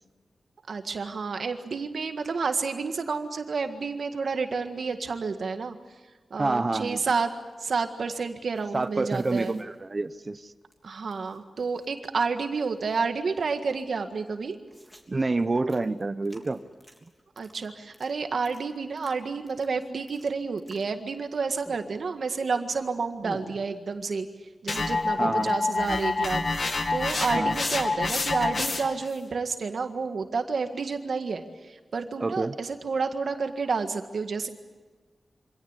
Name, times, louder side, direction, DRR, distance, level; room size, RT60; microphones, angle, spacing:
voice 1, 0.7-5.7 6.3-7.3 7.6-9.6 10.8-14.6 17.4-24.3 24.6-34.5, right 4 dB, 70° right, 7 dB, 1.8 m, -30 dB
voice 2, 6.4-7.0 8.7-10.5 15.1-16.6 25.2-25.5 27.3-27.6 32.2-32.6, right 3 dB, 35° right, 13 dB, 0.8 m, -28 dB
sound 1, 8.5-10.7 11.0-12.1 12.3-12.4 12.7-13.4 13.8-13.9 14.1-21.3 21.6-22.3 22.6-24.2 24.5-26.9, equal, ahead, 3.5 m, -50 dB
sound 2, 24.7-29.1, left 3 dB, 50° left, 2.3 m, -27 dB
25.5 x 17.5 x 9.9 m, 1.3 s
wide cardioid pair, 115°, 0 cm